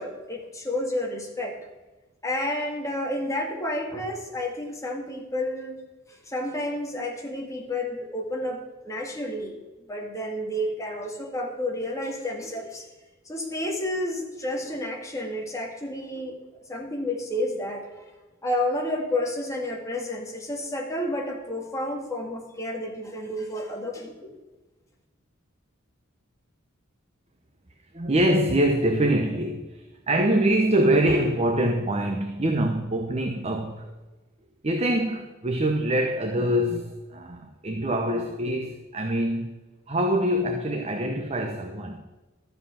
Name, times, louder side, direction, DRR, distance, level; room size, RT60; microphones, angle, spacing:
voice 1, 0.0-1.6 2.2-5.8 6.1-9.6 9.9-12.9 13.3-16.3 16.7-18.0 18.4-24.4, left 1 dB, 15° left, 0 dB, 2.0 m, -30 dB
voice 2, 27.9-33.9 34.6-39.5 39.9-42.0, right 1 dB, 30° right, 4 dB, 0.9 m, -24 dB
12.5 x 7.6 x 5.8 m, 1.2 s
head